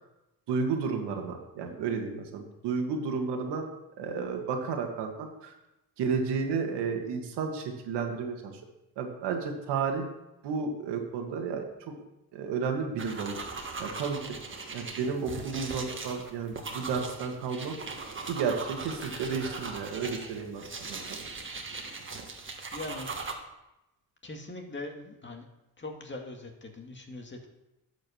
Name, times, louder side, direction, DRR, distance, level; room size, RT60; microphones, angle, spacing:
voice 1, 0.5-3.7 4.0-5.5 6.0-8.6 9.0-10.1 10.4-11.6 12.3-14.4 14.7-17.8 18.3-20.6 20.9-21.2, right 5 dB, 85° right, 4 dB, 1.8 m, -32 dB
sound 1, 13.0-23.3, right 4 dB, 30° right, 1.6 m, -39 dB
voice 2, 22.7-23.1 24.2-25.5 25.8-27.5, left 2 dB, 30° left, 3 dB, 1.9 m, -41 dB
10.5 x 5.1 x 7.0 m, 0.94 s
cardioid pair, 90°, 40 cm